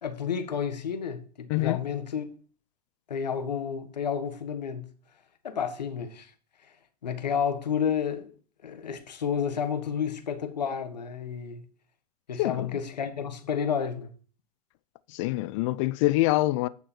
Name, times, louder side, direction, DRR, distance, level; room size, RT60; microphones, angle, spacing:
voice 1, 0.0-2.3 3.1-4.9 5.4-6.3 7.0-8.3 8.6-11.6 12.3-14.1, left 7 dB, 80° left, 1.7 m, -31 dB
voice 2, 12.4-12.7 15.1-16.7, left 18 dB, 50° left, 0.6 m, -25 dB
9.5 x 6.9 x 4.5 m
hypercardioid pair, 105°, 21 cm